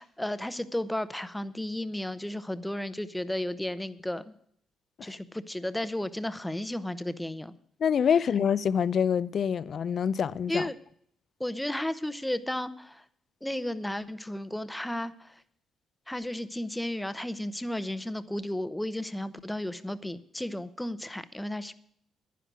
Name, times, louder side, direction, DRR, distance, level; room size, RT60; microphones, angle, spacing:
voice 1, 0.0-4.3 5.0-7.5 10.5-10.7 11.4-13.0 13.4-15.4 16.1-21.7, left 1 dB, 5° left, 0.8 m, -33 dB
voice 2, 7.8-10.7, left 7 dB, 55° left, 0.5 m, -26 dB
11.0 x 10.5 x 6.1 m
cardioid pair, 90°, 0 cm